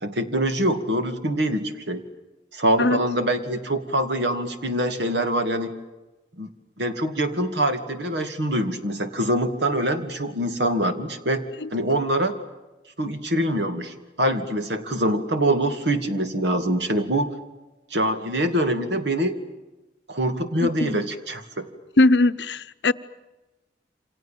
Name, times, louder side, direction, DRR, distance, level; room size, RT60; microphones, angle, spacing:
voice 1, 0.0-2.0 2.5-5.7 6.4-6.5 6.8-11.4 11.7-12.3 13.0-17.3 17.9-19.4 20.1-21.7, right 1 dB, 80° right, 2.5 m, -24 dB
voice 2, 20.6-21.0 22.0-22.9, left 2 dB, 80° left, 0.9 m, -20 dB
28.5 x 26.5 x 7.4 m
head